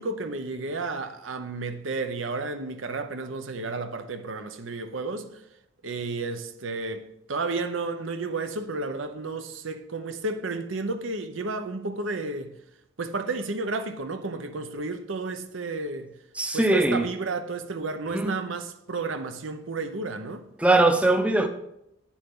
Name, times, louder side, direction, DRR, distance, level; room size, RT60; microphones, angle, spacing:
voice 1, 0.0-5.3 5.8-7.0 7.3-12.5 13.0-16.1 16.5-20.4, right 3 dB, 90° right, 0.8 m, -32 dB
voice 2, 16.4-17.0 18.1-18.3 20.6-21.5, right 2 dB, 5° right, 0.5 m, -21 dB
9.3 x 7.3 x 3.7 m
head